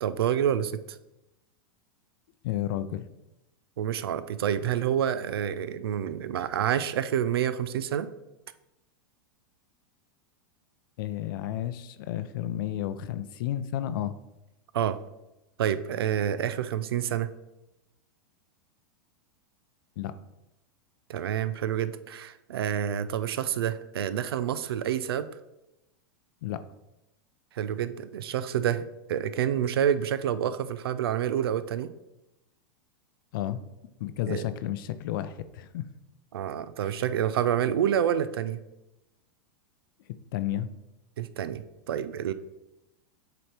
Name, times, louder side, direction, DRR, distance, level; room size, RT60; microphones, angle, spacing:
voice 1, 0.0-1.0 3.8-8.1 14.7-15.0 15.6-17.3 21.1-25.3 27.5-31.9 34.3-34.4 36.3-38.6 41.2-42.3, right 9 dB, 90° right, 13 dB, 0.5 m, -28 dB
voice 2, 2.4-3.0 11.0-14.2 20.0-20.1 26.4-26.6 33.3-33.6 34.0-35.8 36.8-36.9 40.3-40.7, left 12 dB, 65° left, 12 dB, 0.5 m, -32 dB
7.8 x 3.1 x 4.3 m, 0.93 s
supercardioid pair, 130°, 12 cm